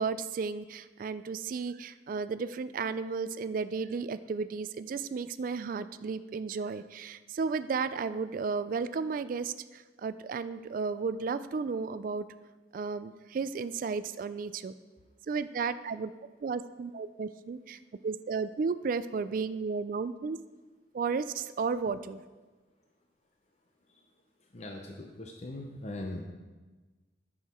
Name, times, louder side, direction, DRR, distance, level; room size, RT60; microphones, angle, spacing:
voice 1, 0.0-12.3 12.7-14.7 15.3-16.1 16.4-20.4 20.9-22.2, right 5 dB, 50° right, 13 dB, 0.3 m, -33 dB
voice 2, 24.5-26.2, left 1 dB, 35° left, 2 dB, 0.7 m, -40 dB
10.5 x 6.4 x 4.3 m, 1.3 s
head